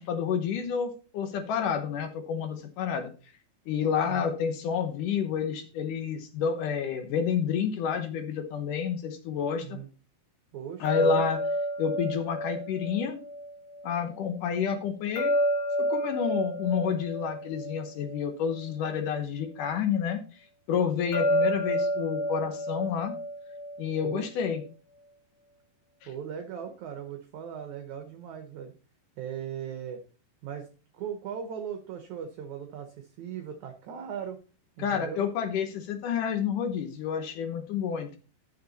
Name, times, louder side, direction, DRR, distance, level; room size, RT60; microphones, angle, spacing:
voice 1, 0.0-3.1 3.7-9.8 10.8-11.4 11.8-13.2 13.8-15.3 15.8-20.2 20.7-23.1 23.8-24.6 26.0-26.1 34.8-38.2, left 7 dB, 70° left, 7 dB, 2.4 m, -29 dB
voice 2, 10.5-11.3 24.0-24.3 26.1-28.7 29.2-30.0 30.4-30.7 30.9-34.4 34.8-35.2, right 8 dB, 65° right, 6 dB, 2.1 m, -38 dB
sound 1, 10.8-13.9 15.2-18.7 21.1-24.2, equal, 35° left, 2.0 m, -30 dB
11.0 x 7.1 x 4.0 m, 0.36 s
omnidirectional pair, 4.2 m